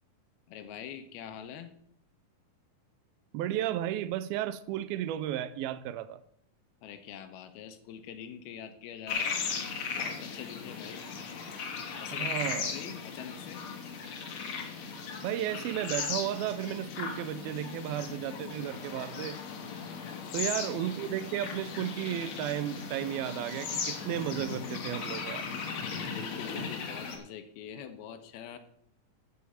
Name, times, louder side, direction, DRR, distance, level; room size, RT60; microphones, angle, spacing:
voice 1, 0.5-1.7 6.8-9.4 9.8-11.1 12.0-13.7 20.0-20.5 26.0-28.6, left 8 dB, 80° left, 2.9 m, -45 dB
voice 2, 3.3-6.2 12.1-12.8 15.2-19.4 20.3-25.5, right 12 dB, 85° right, 2.4 m, -34 dB
sound 1, 9.1-27.2, left 5 dB, 55° left, 2.2 m, -37 dB
13.5 x 6.4 x 5.6 m
omnidirectional pair, 4.4 m